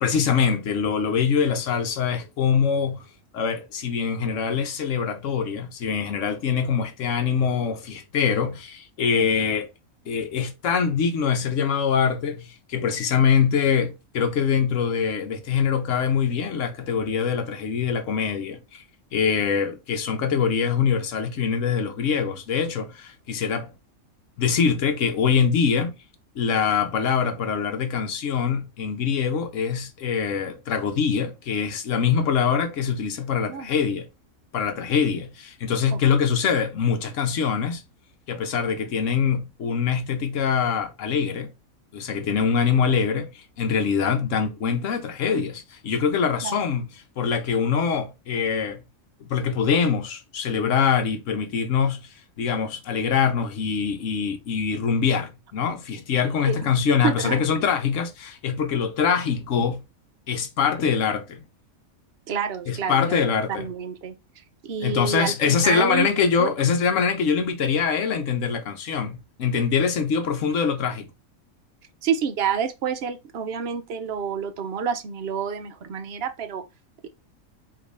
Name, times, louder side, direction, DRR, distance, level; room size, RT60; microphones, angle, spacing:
voice 1, 0.0-3.0 3.3-9.7 10.1-18.8 19.1-23.7 24.4-26.0 26.4-34.1 34.5-37.8 38.3-41.5 41.9-46.9 47.2-48.8 49.2-52.0 52.4-59.8 60.3-61.4 62.7-63.7 64.8-71.1, left 6 dB, 70° left, 1.1 m, -24 dB
voice 2, 57.0-57.5 62.3-63.2 63.6-64.1 64.6-66.1 66.4-66.5 72.0-76.6, right 6 dB, 55° right, 0.8 m, -28 dB
5.1 x 2.9 x 3.3 m
omnidirectional pair, 1.5 m